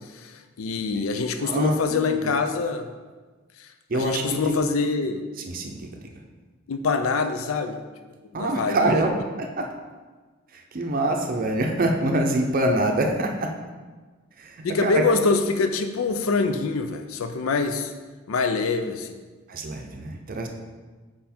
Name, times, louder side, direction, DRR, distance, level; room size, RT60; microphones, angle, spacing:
voice 1, 0.0-2.9 3.6-3.7 3.9-5.2 6.7-7.8 8.4-8.9 14.6-17.9 18.3-19.2, left 4 dB, 85° left, 7 dB, 0.5 m, -25 dB
voice 2, 1.4-2.3 3.9-4.6 5.4-6.1 8.3-9.1 9.4-9.7 10.5-13.5 14.4-15.0 19.5-20.5, right 1 dB, 45° right, 3 dB, 0.6 m, -25 dB
5.7 x 5.0 x 4.3 m, 1.4 s
head